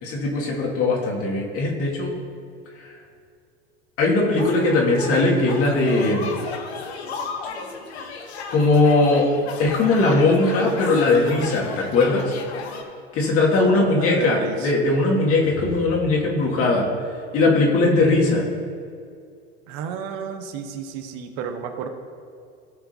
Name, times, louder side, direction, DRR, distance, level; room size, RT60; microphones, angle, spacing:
voice 1, 0.0-2.1 4.0-6.4 8.5-9.3 9.6-12.2 13.1-16.9 17.3-18.4, left 2 dB, 45° left, -2 dB, 2.2 m, -19 dB
sound 1, 4.4-12.8, left 5 dB, 70° left, 1.1 m, -34 dB
voice 2, 13.6-14.7 19.7-21.9, right 6 dB, 50° right, 6 dB, 1.0 m, -32 dB
16.5 x 5.8 x 2.7 m, 2.3 s
figure-of-eight pair, 80°, 33 cm